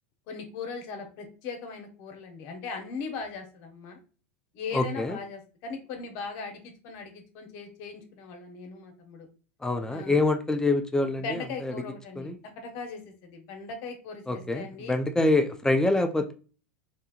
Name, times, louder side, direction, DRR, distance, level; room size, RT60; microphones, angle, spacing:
voice 1, 0.3-4.0 4.5-9.3 9.9-10.2 11.2-14.9, left 4 dB, 55° left, 4 dB, 0.9 m, -39 dB
voice 2, 4.7-5.2 9.6-11.7 12.2-12.4 14.3-16.3, left 2 dB, 10° left, 6 dB, 0.4 m, -26 dB
3.4 x 2.8 x 2.2 m, 0.36 s
hypercardioid pair, 95°, 7 cm